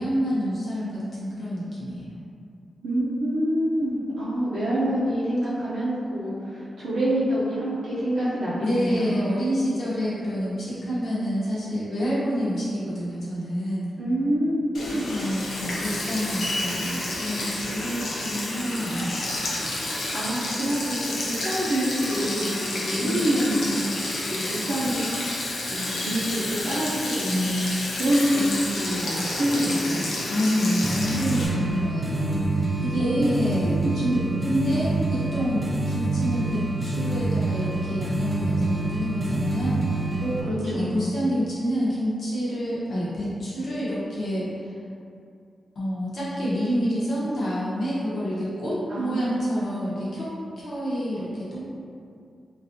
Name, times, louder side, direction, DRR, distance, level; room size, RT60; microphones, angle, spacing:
voice 1, 0.0-2.2 8.6-13.9 14.9-19.3 23.0-23.2 30.3-39.8 40.4-44.5 45.7-50.3 50.6-51.6, equal, 60° left, -10 dB, 1.0 m, -28 dB
voice 2, 2.8-9.1 14.0-15.1 20.1-23.9 24.3-25.0 25.7-30.0 33.0-33.3 33.6-34.4 34.7-34.8 40.2-41.1 48.9-49.7, equal, 80° right, -11 dB, 0.6 m, -26 dB
Sink (filling or washing), 14.7-31.5, left 1 dB, 90° left, 0.6 m, -30 dB
sound 1, 30.8-40.4, right 2 dB, 20° right, 0.4 m, -27 dB
3.2 x 2.5 x 2.7 m, 2.4 s
wide cardioid pair, 175°, 0 cm